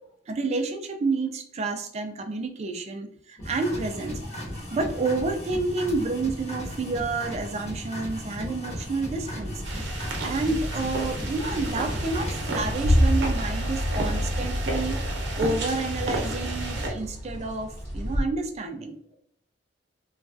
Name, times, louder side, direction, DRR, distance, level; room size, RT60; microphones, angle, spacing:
voice 1, 0.3-4.2 4.7-9.9 10.2-15.0 15.4-19.0, right 3 dB, 35° right, 5 dB, 0.3 m, -29 dB
sound 1, 3.4-12.9, equal, 40° left, 1.1 m, -36 dB
voice 2, 4.3-4.8 8.4-8.5 9.9-10.2 13.9-14.2, left 2 dB, 70° left, 0 dB, 0.8 m, -48 dB
sound 2, 9.1-18.2, equal, 15° left, 1.1 m, -38 dB
sound 3, 9.6-16.9, equal, 75° right, 0.7 m, -27 dB
3.0 x 2.4 x 2.5 m, 0.67 s
head